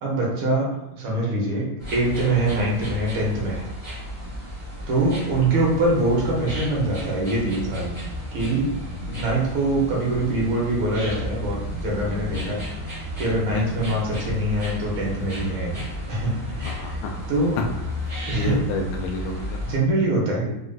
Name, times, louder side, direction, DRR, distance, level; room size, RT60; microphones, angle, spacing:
voice 1, 0.0-0.7 0.9-3.7 4.9-8.0 8.3-8.7 9.1-12.6 12.9-16.3 16.6-17.0 17.3-17.6 18.3-18.5 19.6-20.5, right 2 dB, 80° right, -3 dB, 1.7 m, -24 dB
sound 1, 1.8-19.8, left 1 dB, 10° right, 1.1 m, -33 dB
voice 2, 16.6-17.1 18.0-19.6 20.0-20.1, left 2 dB, 80° left, 2 dB, 1.4 m, -30 dB
3.9 x 2.3 x 2.2 m, 0.90 s
omnidirectional pair, 2.3 m